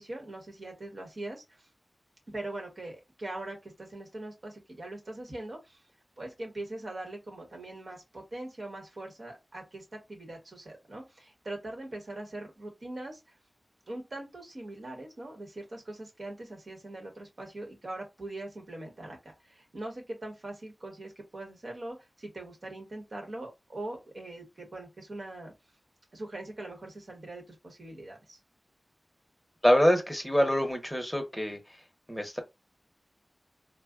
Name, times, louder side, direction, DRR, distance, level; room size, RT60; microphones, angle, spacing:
voice 1, 0.0-1.7 2.3-5.8 6.2-13.4 13.9-19.2 19.4-25.5 26.1-28.4, right 2 dB, 60° right, 1.3 m, -42 dB
voice 2, 29.6-31.6 32.1-32.4, equal, 5° left, 0.9 m, -25 dB
3.7 x 2.3 x 2.3 m
wide cardioid pair, 75°, 0 cm